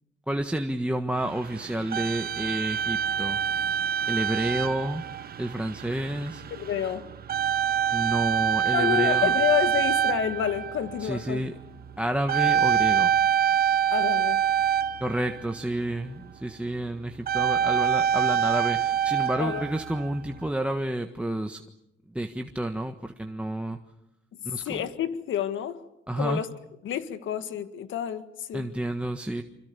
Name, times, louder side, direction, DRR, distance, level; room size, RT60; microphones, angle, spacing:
voice 1, 0.3-3.4 4.1-5.0 5.4-6.4 7.9-9.3 11.0-11.6 12.0-13.1 15.0-21.6 22.1-23.8 24.4-24.8 26.1-26.4 28.5-29.4, right 1 dB, 5° right, 1.5 m, -30 dB
sound 1, 1.2-15.7 17.2-20.5, right 8 dB, 50° right, 1.2 m, -26 dB
voice 2, 6.5-7.1 8.7-11.5 13.9-14.4 19.4-19.6 24.6-25.8 26.2-26.5 26.8-28.7, left 9 dB, 75° left, 1.7 m, -29 dB
26.5 x 26.0 x 7.0 m
cardioid pair, 90°, 20 cm